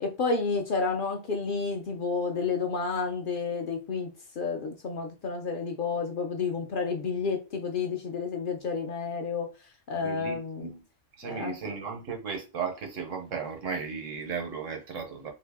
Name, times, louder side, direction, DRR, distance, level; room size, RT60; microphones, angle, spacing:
voice 1, 0.0-4.1 4.4-9.5 9.9-10.7 11.2-11.5, left 4 dB, 60° left, 0.6 m, -30 dB
voice 2, 10.0-10.8 11.2-15.3, right 5 dB, 90° right, 1.2 m, -35 dB
2.8 x 2.6 x 3.4 m
omnidirectional pair, 1.3 m